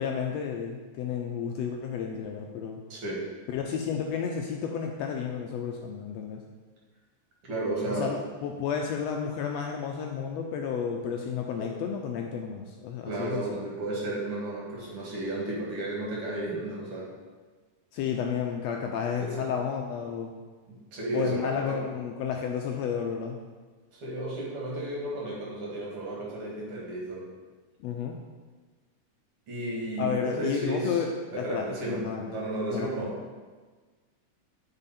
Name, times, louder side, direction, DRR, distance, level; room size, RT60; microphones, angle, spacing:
voice 1, 0.0-2.8 3.5-6.4 7.9-13.6 17.9-20.3 21.1-23.4 27.8-28.2 30.0-31.1 31.4-32.9, left 7 dB, 80° left, 2 dB, 1.5 m, -32 dB
voice 2, 2.9-3.2 7.4-8.1 11.6-11.7 13.0-17.1 19.2-19.5 20.7-21.8 23.9-27.2 29.5-31.0 31.3-32.0 32.3-33.1, right 2 dB, 50° right, -4 dB, 2.5 m, -33 dB
8.9 x 5.0 x 4.2 m, 1.4 s
omnidirectional pair, 3.5 m